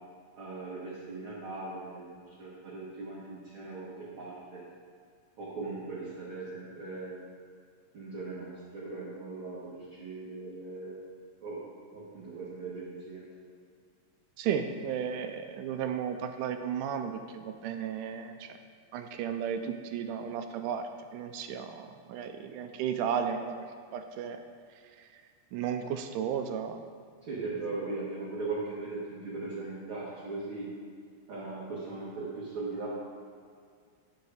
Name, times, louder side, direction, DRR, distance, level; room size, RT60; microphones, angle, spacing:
voice 1, 0.3-4.6 5.4-7.2 7.9-11.0 11.4-11.6 11.9-13.3 27.2-30.7 31.3-32.9, right 3 dB, 50° right, -7 dB, 1.8 m, -39 dB
voice 2, 14.4-18.5 18.9-23.6 23.9-24.4 25.0-25.1 25.5-26.8, right 8 dB, 80° right, 7 dB, 2.0 m, -34 dB
9.3 x 6.4 x 4.9 m, 2.2 s
omnidirectional pair, 3.8 m